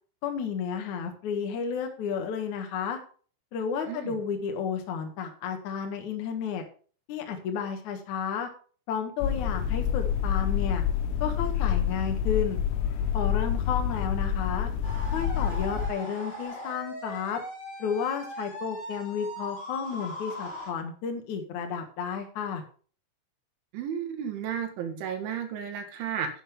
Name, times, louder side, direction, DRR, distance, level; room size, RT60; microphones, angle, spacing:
voice 1, 0.2-3.0 3.5-6.6 7.1-8.5 8.9-10.8 11.2-12.6 13.1-14.7 15.1-17.4 17.8-22.6, left 7 dB, 65° left, 4 dB, 1.9 m, -32 dB
sound 1, 9.2-15.9, left 9 dB, 85° left, 3.7 m, -27 dB
sound 2, 14.8-20.7, equal, 35° left, 5.2 m, -39 dB
voice 2, 23.7-26.3, right 8 dB, 70° right, 6 dB, 4.0 m, -33 dB
11.0 x 9.8 x 3.6 m, 0.41 s
omnidirectional pair, 6.0 m